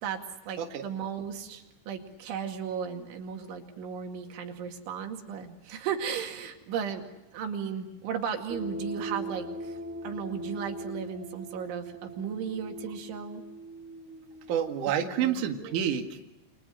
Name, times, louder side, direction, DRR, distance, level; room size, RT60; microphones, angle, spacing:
voice 1, 0.0-13.4 15.0-15.8, right 7 dB, 80° right, 4 dB, 4.7 m, -36 dB
sound 1, 8.5-15.0, right 1 dB, 5° right, 1.0 m, -40 dB
voice 2, 14.5-16.3, right 9 dB, 50° right, 3 dB, 3.0 m, -29 dB
29.5 x 27.0 x 6.4 m, 0.94 s
omnidirectional pair, 5.4 m